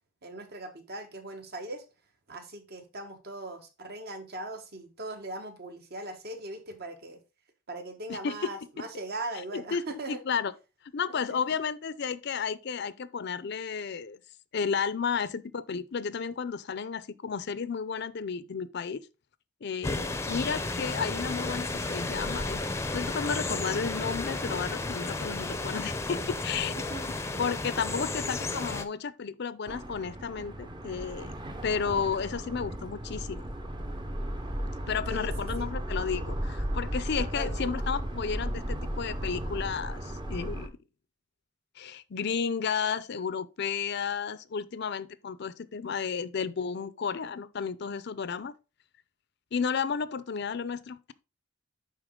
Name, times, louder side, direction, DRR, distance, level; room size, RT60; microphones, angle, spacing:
voice 1, 0.2-1.8 2.3-7.2 7.7-10.2 11.1-11.4 26.8-27.0 35.1-35.3 35.6-35.7 37.2-37.7, right 2 dB, 50° right, 1.4 m, -40 dB
voice 2, 8.1-8.5 8.8-8.9 9.5-10.5 10.9-14.2 14.5-19.1 19.6-22.6 22.9-26.8 27.4-31.3 31.6-33.4 34.9-40.8 41.8-48.5 49.5-51.1, left 6 dB, 60° left, 0.5 m, -32 dB
sound 1, 19.8-28.8, left 2 dB, 15° left, 0.6 m, -33 dB
sound 2, 29.7-40.7, equal, 25° right, 0.8 m, -35 dB
9.9 x 4.0 x 3.7 m
head